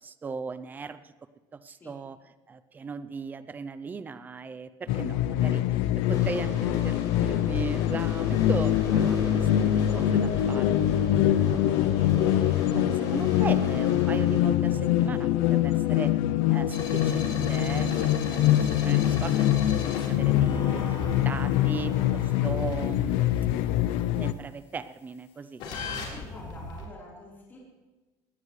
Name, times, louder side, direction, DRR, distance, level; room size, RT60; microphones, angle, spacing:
voice 1, 0.0-1.1 1.5-2.2 2.5-5.8 6.1-11.1 11.5-16.1 16.5-19.5 20.0-23.2 23.8-25.6, right 5 dB, 20° right, 13 dB, 0.6 m, -38 dB
sound 1, 4.9-24.3, left 12 dB, 80° left, 0.6 m, -24 dB
sound 2, 6.1-14.4, left 2 dB, 40° left, 6.2 m, -39 dB
sound 3, 16.7-24.1 25.6-26.8, left 4 dB, 60° left, 4.4 m, -38 dB
voice 2, 26.0-27.6, left 2 dB, 20° left, -4 dB, 4.2 m, -46 dB
20.5 x 17.5 x 3.3 m, 1.2 s
cardioid pair, 165°, 10 cm